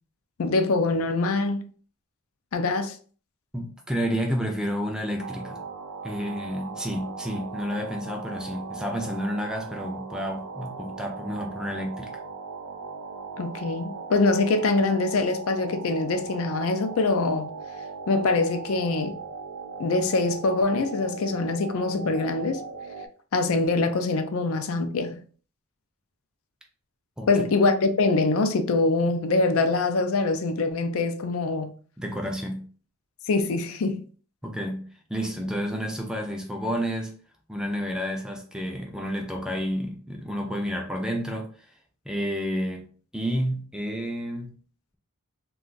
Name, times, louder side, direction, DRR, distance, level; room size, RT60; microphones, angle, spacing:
voice 1, 0.4-1.6 2.5-3.0 13.4-17.5 18.1-19.2 19.8-22.6 23.3-25.2 27.3-31.7 33.3-34.0, left 3 dB, 65° left, 0.4 m, -24 dB
voice 2, 3.5-5.6 6.0-12.1 27.2-27.3 32.0-32.7 34.4-37.1 37.5-41.5 42.1-42.9 43.1-44.5, equal, 5° right, 0.4 m, -30 dB
sound 1, 5.2-23.1, right 4 dB, 90° right, 0.4 m, -39 dB
2.4 x 2.3 x 3.8 m
head